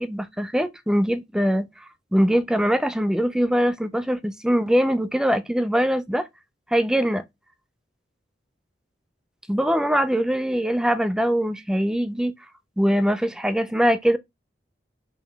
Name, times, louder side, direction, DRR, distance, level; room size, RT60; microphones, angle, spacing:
voice 1, 0.0-1.7 2.1-6.3 6.7-7.2 9.5-12.3 12.8-14.2, equal, 5° right, 0.3 m, -22 dB
3.8 x 3.0 x 3.3 m
head